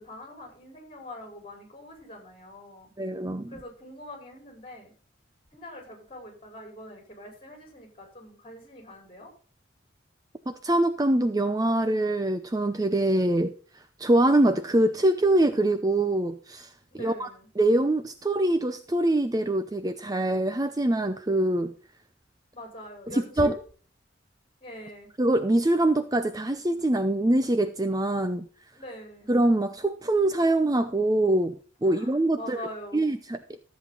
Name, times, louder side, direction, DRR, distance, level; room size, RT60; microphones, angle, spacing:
voice 1, 0.0-2.9 3.5-4.9 5.5-9.3 16.9-17.5 22.5-23.6 24.6-25.1 28.7-29.3 31.8-33.2, left 1 dB, 30° left, 2 dB, 4.9 m, -43 dB
voice 2, 3.0-3.5 10.5-13.5 14.0-16.7 17.0-17.3 17.6-21.7 23.1-23.5 25.2-28.5 29.3-32.6 32.9-33.4, right 1 dB, 20° right, 10 dB, 0.6 m, -24 dB
13.5 x 7.8 x 3.8 m, 0.41 s
head